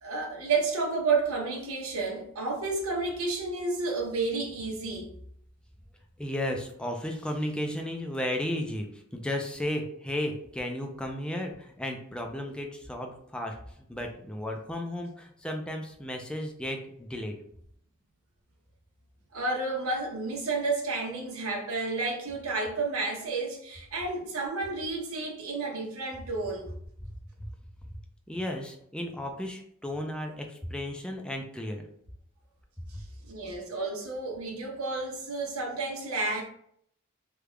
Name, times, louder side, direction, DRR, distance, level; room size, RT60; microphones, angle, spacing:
voice 1, 0.0-5.1 19.3-26.7 32.9-36.4, right 3 dB, 90° right, -1 dB, 0.9 m, -31 dB
voice 2, 6.2-8.9 9.1-13.5 13.9-17.3 28.3-31.8, left 1 dB, 5° left, 2 dB, 0.4 m, -34 dB
3.4 x 2.3 x 3.2 m, 0.69 s
head